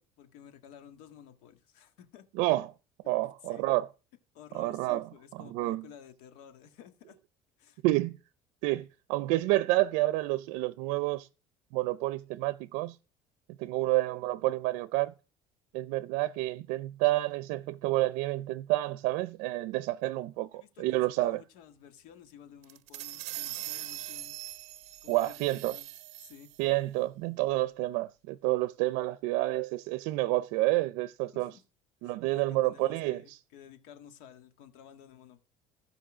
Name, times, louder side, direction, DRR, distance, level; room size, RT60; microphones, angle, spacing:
voice 1, 0.0-2.3 3.0-3.2 3.4-3.6 4.3-7.2 7.6-7.8 20.5-24.5 25.0-26.5 31.3-31.6 32.0-35.5, left 9 dB, 80° left, 1.7 m, -53 dB
voice 2, 2.4-2.7 3.1-3.9 4.5-5.1 5.4-5.9 7.8-8.2 8.6-11.3 11.7-13.0 13.6-15.1 15.7-21.4 25.1-25.8 26.6-31.5 32.0-33.4, right 18 dB, 90° right, 0.6 m, -29 dB
sound 1, 22.6-26.6, right 15 dB, 60° right, 0.8 m, -41 dB
15.5 x 5.3 x 6.2 m
cardioid pair, 180°, 13 cm